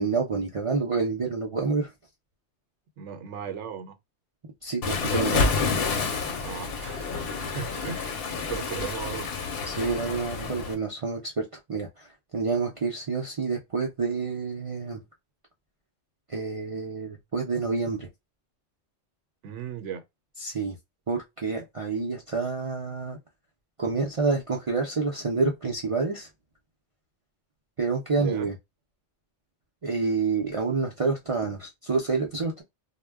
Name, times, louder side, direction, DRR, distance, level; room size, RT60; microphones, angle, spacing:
voice 1, 0.0-1.9 4.6-5.5 9.7-15.0 16.3-18.1 20.4-20.8 21.1-23.2 23.8-26.3 27.8-28.5 29.8-32.6, right 4 dB, 45° right, 0.4 m, -28 dB
voice 2, 3.0-4.0 6.4-7.2 7.5-9.3 19.4-20.0 28.2-28.5, right 7 dB, 75° right, 0.9 m, -36 dB
Waves surf, 4.8-10.7, left 4 dB, 60° left, 0.7 m, -29 dB
2.2 x 2.1 x 3.3 m
omnidirectional pair, 1.3 m